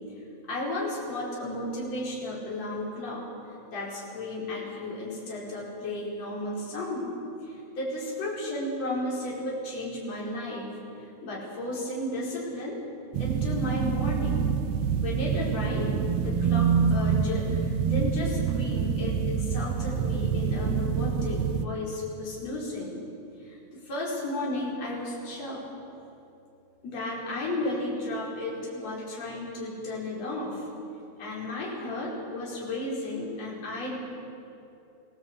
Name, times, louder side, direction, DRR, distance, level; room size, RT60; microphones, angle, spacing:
voice 1, 0.5-3.2 3.7-7.1 7.4-10.8 11.2-12.8 13.2-14.5 14.9-15.9 16.2-23.0 23.4-23.6 23.9-25.6 26.8-30.7 31.2-34.0, left 1 dB, 45° left, -5 dB, 6.0 m, -33 dB
sound 1, 13.1-21.6, right 6 dB, 90° right, 1.4 m, -26 dB
24.5 x 16.5 x 8.3 m, 2.8 s
omnidirectional pair, 4.1 m